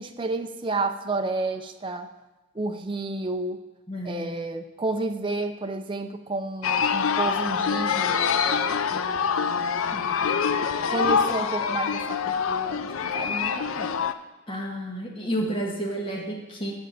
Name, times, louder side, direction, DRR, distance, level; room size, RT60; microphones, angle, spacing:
voice 1, 0.0-2.1 2.5-3.6 4.0-10.2 10.9-14.1, right 2 dB, 25° right, 6 dB, 0.6 m, -31 dB
voice 2, 3.9-4.3 9.9-10.2 14.5-16.7, right 1 dB, 25° left, -3 dB, 1.4 m, -31 dB
sound 1, 6.6-14.1, left 6 dB, 70° left, 0.5 m, -25 dB
7.9 x 5.5 x 7.6 m, 1.1 s
head